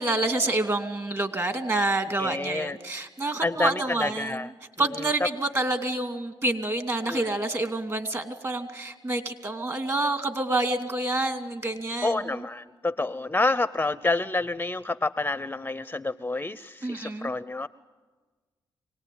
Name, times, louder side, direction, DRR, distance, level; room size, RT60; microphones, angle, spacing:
voice 1, 0.0-4.4 4.8-12.1 16.8-17.3, right 2 dB, 35° right, 7 dB, 2.6 m, -28 dB
voice 2, 2.2-2.8 3.4-4.5 4.8-5.3 7.0-7.4 12.0-17.7, left 2 dB, 20° left, 15 dB, 0.7 m, -28 dB
25.5 x 18.5 x 9.4 m, 1.4 s
supercardioid pair, 55°, 9 cm